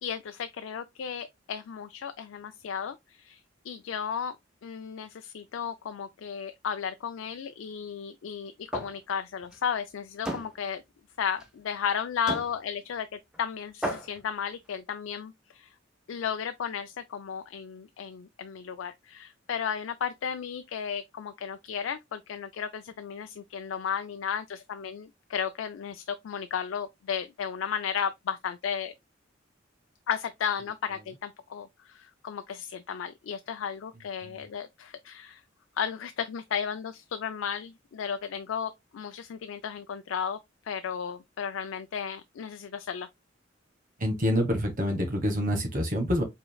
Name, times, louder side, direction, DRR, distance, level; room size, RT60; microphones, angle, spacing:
voice 1, 0.0-4.3 4.6-10.8 11.2-15.7 16.1-28.9 30.1-35.4 35.8-40.4 40.7-43.1, left 7 dB, 85° left, 0.4 m, -34 dB
sound 1, 8.7-9.0 9.4-9.6 10.2-10.5 11.4-11.5 12.3-12.5 13.3-13.4 13.8-14.2, right 1 dB, 5° right, 0.8 m, -34 dB
voice 2, 44.0-46.2, equal, 45° right, 1.3 m, -27 dB
5.0 x 3.7 x 2.2 m
head